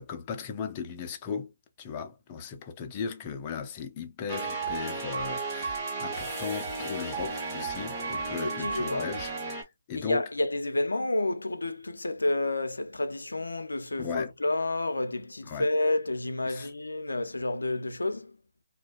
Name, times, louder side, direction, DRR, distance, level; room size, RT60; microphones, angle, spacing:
voice 1, 0.0-1.5 1.8-9.6 9.9-10.2 14.0-14.3 15.4-15.7 16.5-16.7, left 6 dB, 25° left, 0.5 m, -37 dB
sound 1, 4.3-9.6, right 4 dB, 20° right, 1.2 m, -34 dB
voice 2, 8.4-9.1 9.9-18.3, left 2 dB, 85° left, 0.5 m, -30 dB
2.5 x 2.2 x 2.3 m
figure-of-eight pair, 150°, 0 cm